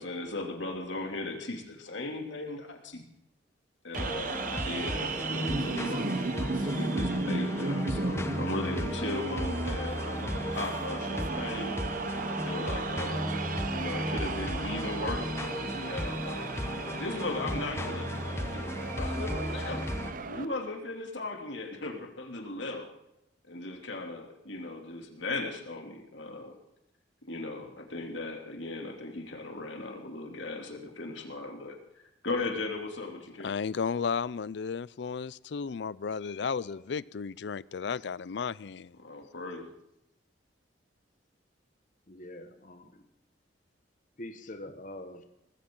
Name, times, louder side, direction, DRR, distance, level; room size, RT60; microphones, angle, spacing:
voice 1, 0.0-3.1 3.8-6.1 6.6-11.8 12.3-13.4 13.7-16.5 16.9-19.9 20.3-22.9 23.5-26.6 27.2-31.8 32.2-33.5 39.0-39.7, left 2 dB, 85° left, 2.8 m, -37 dB
sound 1, 3.9-20.1, left 1 dB, 15° left, 1.0 m, -35 dB
sound 2, 3.9-20.5, right 3 dB, 45° right, 0.8 m, -35 dB
voice 2, 33.4-38.9, left 5 dB, 65° left, 0.4 m, -33 dB
voice 3, 36.5-36.9 42.1-43.0 44.2-45.2, left 1 dB, 45° left, 1.5 m, -44 dB
19.0 x 15.5 x 3.8 m
head